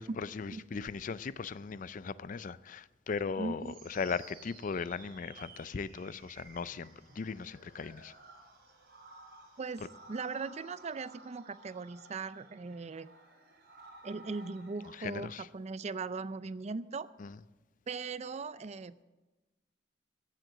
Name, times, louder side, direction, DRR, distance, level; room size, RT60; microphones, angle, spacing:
voice 1, 0.0-6.9 7.2-8.1 14.9-15.5 17.2-17.4, left 5 dB, 45° left, 0.4 m, -38 dB
voice 2, 3.4-3.8 9.6-13.1 14.0-17.1 17.9-19.0, right 4 dB, 40° right, 0.5 m, -39 dB
sound 1, 3.6-14.9, right 3 dB, 60° right, 3.3 m, -55 dB
15.5 x 7.6 x 7.8 m
head